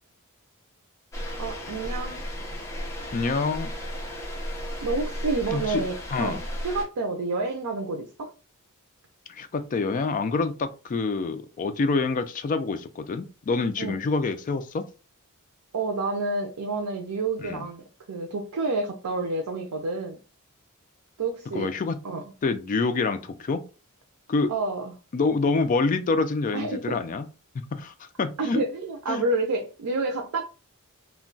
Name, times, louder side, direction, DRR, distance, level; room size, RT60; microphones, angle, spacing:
sound 1, 1.1-6.8, equal, 15° left, 0.7 m, -34 dB
voice 1, 1.4-2.2 4.8-8.3 13.8-14.0 15.7-20.2 21.2-21.7 22.0-22.2 24.5-24.9 26.5-27.0 28.4-30.4, right 3 dB, 90° right, 0.5 m, -29 dB
voice 2, 3.1-3.7 5.5-5.8 6.1-6.4 9.3-14.9 17.4-17.6 21.5-22.0 22.4-23.6 24.3-24.5 25.1-27.3 27.7-28.6 29.1-29.2, left 3 dB, 35° left, 0.3 m, -26 dB
2.2 x 2.2 x 3.8 m
head